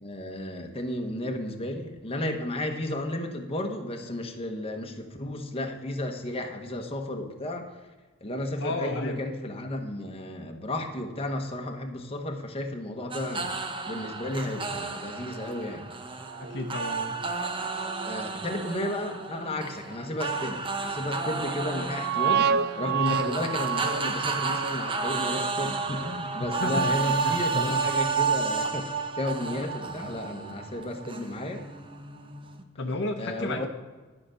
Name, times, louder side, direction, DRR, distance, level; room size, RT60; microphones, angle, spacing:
voice 1, 0.0-7.7 8.2-13.5 13.8-15.9 18.0-28.9 29.2-31.6 33.2-33.7, left 1 dB, 30° left, 3 dB, 1.0 m, -33 dB
voice 2, 8.6-9.3 16.4-17.2 26.4-27.8 32.8-33.7, left 2 dB, 60° left, 4 dB, 0.9 m, -33 dB
sound 1, 13.1-32.6, right 4 dB, 25° right, 0.8 m, -32 dB
sound 2, 16.3-17.4 17.8-18.1 18.6-18.8 19.4-19.5 20.1-20.2 21.9-27.6 27.9-28.0, right 7 dB, 55° right, 0.4 m, -31 dB
11.5 x 5.9 x 6.3 m, 1.3 s
head